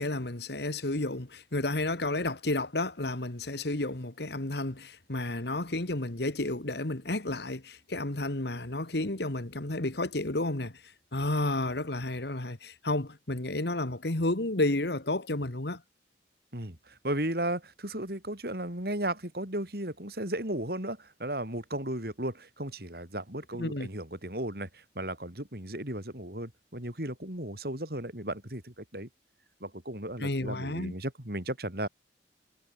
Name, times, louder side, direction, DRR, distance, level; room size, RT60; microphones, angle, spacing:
voice 1, 0.0-10.7 11.1-15.8 23.6-23.9 30.2-30.9, left 2 dB, 65° left, 1.8 m, -31 dB
voice 2, 16.5-29.1 29.6-31.9, right 1 dB, 55° right, 5.4 m, -35 dB
head